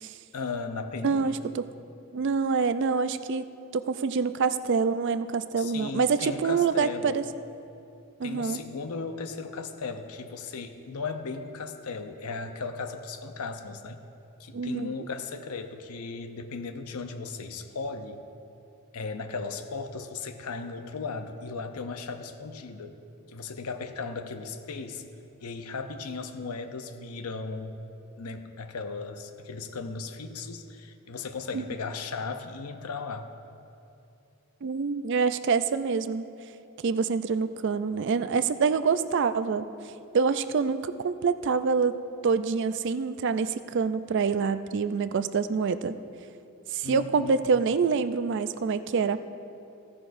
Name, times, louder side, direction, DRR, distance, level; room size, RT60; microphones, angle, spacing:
voice 1, 0.3-1.4 5.6-7.2 8.2-14.0 14.4-18.2 18.9-22.9 23.3-25.0 25.4-27.8 28.2-33.3 46.8-47.4, left 4 dB, 85° left, 7 dB, 0.6 m, -36 dB
voice 2, 1.0-1.7 2.1-7.2 8.2-8.6 14.5-14.9 31.5-31.6 34.6-36.3 36.8-39.6 40.1-42.0 42.2-46.0 46.7-49.2, right 5 dB, 55° right, 12 dB, 0.4 m, -26 dB
15.5 x 11.0 x 2.6 m, 2.7 s
head